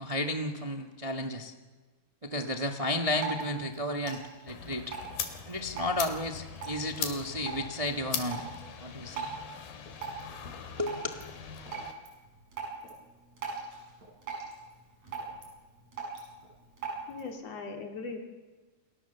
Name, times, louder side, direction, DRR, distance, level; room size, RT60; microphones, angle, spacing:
voice 1, 0.0-1.5 2.2-4.9 5.5-8.4 8.8-9.3 10.8-11.0, left 1 dB, 65° right, 3 dB, 0.3 m, -33 dB
Drip, 2.8-17.3, right 4 dB, 45° right, 8.3 m, -43 dB
sound 1, 4.5-11.9, left 7 dB, 85° left, 4.1 m, -40 dB
voice 2, 17.1-18.2, left 4 dB, 45° left, 2 dB, 3.7 m, -39 dB
29.5 x 26.0 x 7.1 m, 1.3 s
omnidirectional pair, 4.2 m